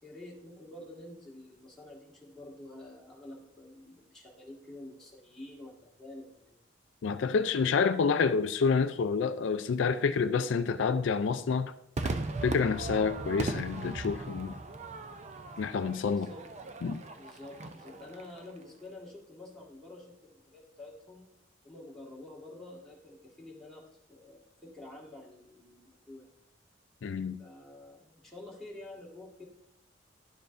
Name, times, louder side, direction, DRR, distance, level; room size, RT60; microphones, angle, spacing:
voice 1, 0.0-6.6 16.0-16.4 17.1-21.3 21.6-26.4 27.4-29.4, left 1 dB, 5° left, -5 dB, 1.9 m, -49 dB
voice 2, 7.0-11.7 12.4-14.5 15.6-16.3 16.8-17.0 27.0-27.4, left 5 dB, 70° left, 10 dB, 0.4 m, -28 dB
Crowd / Fireworks, 12.0-18.5, right 2 dB, 35° right, 0.5 m, -38 dB
11.0 x 6.9 x 2.5 m, 0.77 s
head